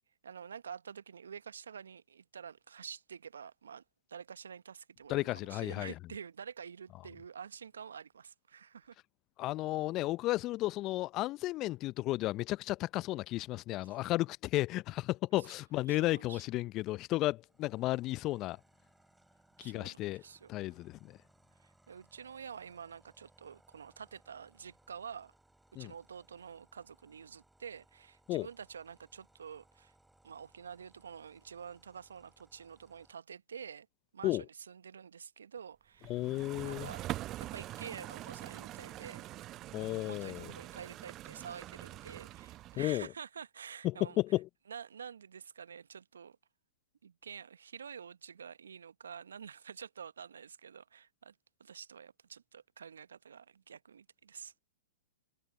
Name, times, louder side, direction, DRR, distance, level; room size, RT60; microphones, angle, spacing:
voice 1, 0.2-3.8 4.1-8.9 13.8-14.0 15.4-15.5 15.9-16.4 19.6-20.8 21.6-25.3 25.7-29.9 30.2-33.9 34.1-36.2 36.6-37.0 37.5-39.3 39.8-44.2 44.7-46.4 47.0-51.3 51.6-54.6, right 7 dB, 75° right, 0.9 m, -48 dB
voice 2, 5.1-5.9 9.4-18.6 19.6-20.2 20.5-21.2 25.8-25.9 28.3-28.5 34.2-34.4 36.1-36.9 39.7-40.5 42.8-43.1 43.8-44.5, left 17 dB, 35° left, 0.5 m, -33 dB
sound 1, 17.4-33.1, right 2 dB, 5° right, 4.0 m, -68 dB
sound 2, 36.0-43.0, right 15 dB, 30° right, 0.4 m, -44 dB
figure-of-eight pair, 110°, 0 cm